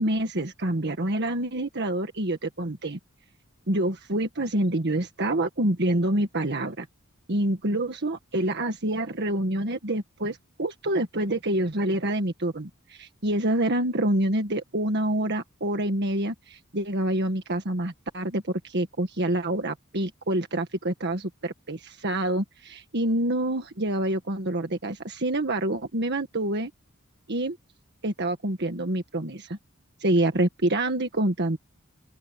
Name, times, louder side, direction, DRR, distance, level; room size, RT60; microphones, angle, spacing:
voice 1, 0.0-3.0 3.7-6.9 7.3-26.7 27.3-27.6 28.0-29.6 30.0-31.6, right 1 dB, 55° right, 1.6 m, -27 dB
open air
head